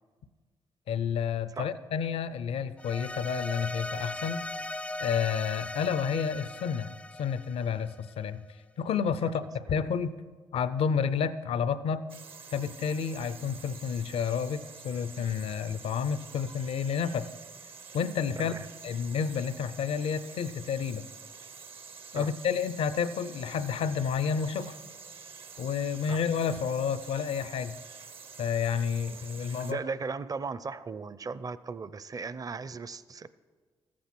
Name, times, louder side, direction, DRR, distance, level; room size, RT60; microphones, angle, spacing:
voice 1, 0.9-4.5 5.0-6.9 7.2-8.4 8.8-10.2 10.5-12.0 12.5-17.3 17.9-18.5 18.8-21.1 22.1-24.8 25.6-27.8 28.4-29.8, left 7 dB, 75° left, 14 dB, 0.5 m, -30 dB
sound 1, 2.8-8.1, left 1 dB, 10° left, 0.4 m, -38 dB
sound 2, 12.1-29.7, right 5 dB, 65° right, 0.9 m, -48 dB
voice 2, 18.4-18.7 22.1-22.3 26.0-26.2 29.5-33.3, right 4 dB, 35° right, 16 dB, 0.6 m, -37 dB
14.0 x 8.6 x 6.0 m, 1.4 s
supercardioid pair, 55°, 10 cm